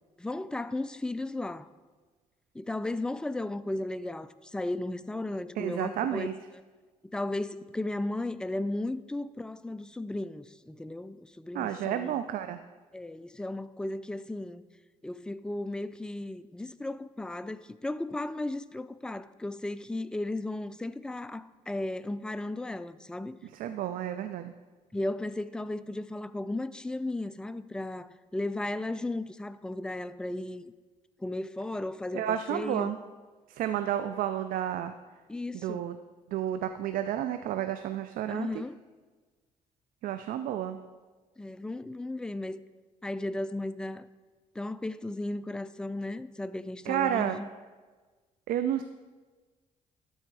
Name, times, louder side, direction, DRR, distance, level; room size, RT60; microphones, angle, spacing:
voice 1, 0.2-1.7 2.5-6.3 6.5-6.6 7.1-12.2 12.9-14.6 15.0-23.4 24.9-30.7 31.2-32.9 35.3-35.8 38.3-38.8 41.4-42.6 43.0-44.1 44.6-47.5, left 2 dB, 5° left, 0.3 m, -35 dB
voice 2, 5.6-6.3 11.5-12.6 23.5-24.5 32.1-33.0 33.5-34.9 35.5-36.0 36.3-38.6 40.0-40.8 46.9-47.4 48.5-48.8, right 11 dB, 80° right, 0.4 m, -31 dB
12.5 x 4.4 x 4.7 m
cardioid pair, 70°, 14 cm